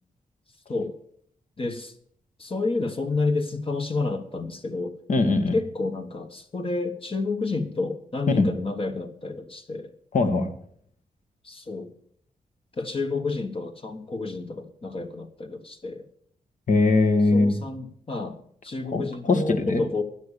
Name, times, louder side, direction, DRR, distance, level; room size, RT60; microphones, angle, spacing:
voice 1, 1.6-1.9 2.4-4.9 5.5-9.9 11.4-11.9 12.8-16.0 17.3-18.4 18.6-20.0, left 3 dB, 40° left, 6 dB, 1.4 m, -30 dB
voice 2, 5.1-5.5 8.4-8.5 10.1-10.5 16.7-17.6 18.9-19.8, left 3 dB, 60° left, 7 dB, 2.0 m, -21 dB
12.5 x 9.9 x 6.6 m, 0.63 s
cardioid pair, 75°, 15 cm